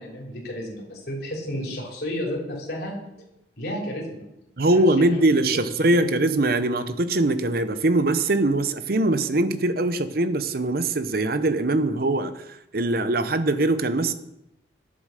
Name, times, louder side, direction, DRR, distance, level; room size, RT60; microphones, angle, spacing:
voice 1, 0.0-2.9 3.6-4.2 4.7-4.8 5.1-5.2 5.8-6.1, equal, 55° left, 3.3 m, -32 dB
voice 2, 4.6-12.3 12.7-14.1, right 2 dB, 55° right, 0.8 m, -22 dB
10.0 x 7.5 x 6.4 m
head